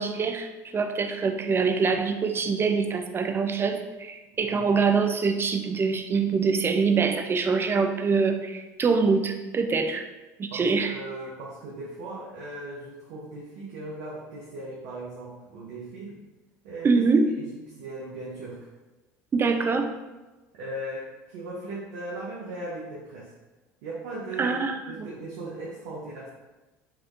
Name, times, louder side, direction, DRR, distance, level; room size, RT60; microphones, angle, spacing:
voice 1, 0.0-10.1 10.4-10.9 16.8-17.3 19.3-19.9 24.4-25.1, right 4 dB, 30° right, 6 dB, 0.4 m, -24 dB
voice 2, 4.4-4.7 10.5-16.2 16.6-17.0 17.4-18.7 20.5-23.3 23.8-26.3, right 2 dB, 75° right, -4 dB, 0.6 m, -38 dB
3.0 x 3.0 x 2.5 m, 1.1 s
hypercardioid pair, 75°, 8 cm